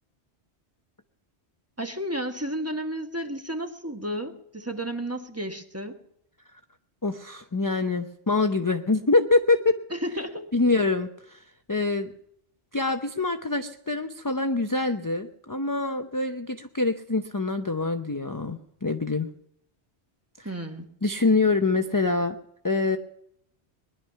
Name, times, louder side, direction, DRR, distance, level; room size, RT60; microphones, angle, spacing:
voice 1, 1.8-6.0 9.9-10.5 20.4-20.9, right 1 dB, 15° right, 5 dB, 1.2 m, -32 dB
voice 2, 7.0-9.8 10.5-11.4 11.7-12.1 12.7-19.3 20.4-20.5 21.0-22.4 22.6-23.0, left 3 dB, 20° left, 6 dB, 0.6 m, -25 dB
20.5 x 11.0 x 5.7 m, 0.73 s
omnidirectional pair, 1.2 m